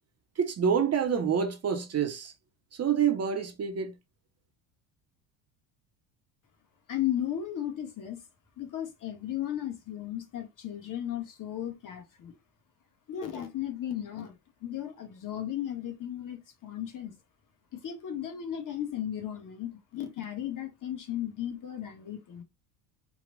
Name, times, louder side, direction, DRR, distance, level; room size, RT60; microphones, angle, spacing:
voice 1, 0.4-2.3 2.7-3.9, right 7 dB, 35° right, 1.0 m, -27 dB
voice 2, 6.9-8.2 8.6-12.3 13.1-14.3 14.6-17.1 17.7-22.4, left 11 dB, 45° left, 1.6 m, -35 dB
4.8 x 2.4 x 3.8 m
cardioid pair, 110°, 45 cm